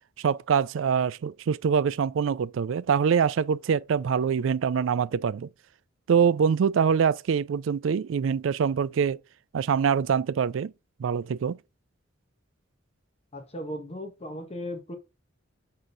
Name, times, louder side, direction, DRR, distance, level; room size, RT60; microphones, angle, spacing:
voice 1, 0.2-5.5 6.1-9.2 9.5-10.7 11.0-11.6, right 7 dB, 70° right, 0.4 m, -24 dB
voice 2, 13.3-14.9, equal, 30° left, 1.5 m, -36 dB
6.4 x 3.8 x 5.3 m
head